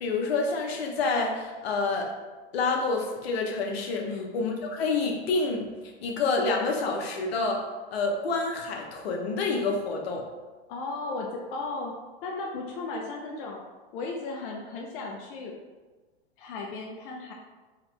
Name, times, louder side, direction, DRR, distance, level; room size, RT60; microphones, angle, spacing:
voice 1, 0.0-2.1 2.5-4.1 4.3-5.7 6.0-7.6 7.9-10.3, left 3 dB, 80° left, 1 dB, 0.9 m, -28 dB
voice 2, 4.0-4.4 10.7-11.9 12.2-13.6 13.9-15.6 16.4-17.3, left 3 dB, 60° left, 0 dB, 0.6 m, -35 dB
3.7 x 2.9 x 3.3 m, 1.3 s
hypercardioid pair, 125°, 30 cm